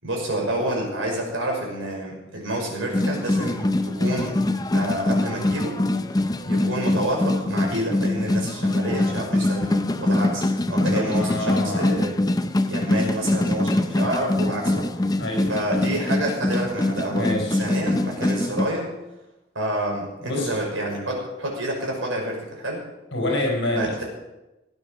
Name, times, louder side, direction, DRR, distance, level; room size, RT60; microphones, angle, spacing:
voice 1, 0.0-4.4 4.7-5.8 6.4-12.1 12.6-15.2 15.5-17.3 17.6-18.9 19.5-22.9 23.7-23.9, right 1 dB, 80° right, -1 dB, 5.7 m, -28 dB
sound 1, 2.9-18.7, left 1 dB, 20° left, 0.6 m, -23 dB
voice 2, 10.8-11.9 15.2-15.6 17.1-17.6 20.2-20.6 23.1-24.1, left 1 dB, 65° left, 0 dB, 4.7 m, -27 dB
17.0 x 9.6 x 6.4 m, 1.0 s
head